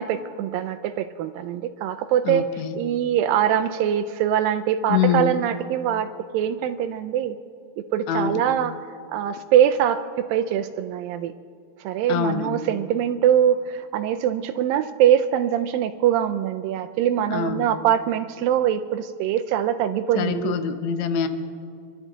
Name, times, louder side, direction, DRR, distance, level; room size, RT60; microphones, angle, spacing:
voice 1, 0.0-2.4 2.8-7.4 7.9-8.7 9.1-11.3 11.8-20.6, right 10 dB, 80° right, 8 dB, 2.1 m, -23 dB
voice 2, 2.2-2.8 4.9-5.4 8.1-8.4 12.1-12.5 17.3-17.7 20.1-21.3, left 7 dB, 80° left, 8 dB, 1.6 m, -24 dB
28.0 x 12.0 x 4.0 m, 2.2 s
omnidirectional pair, 4.5 m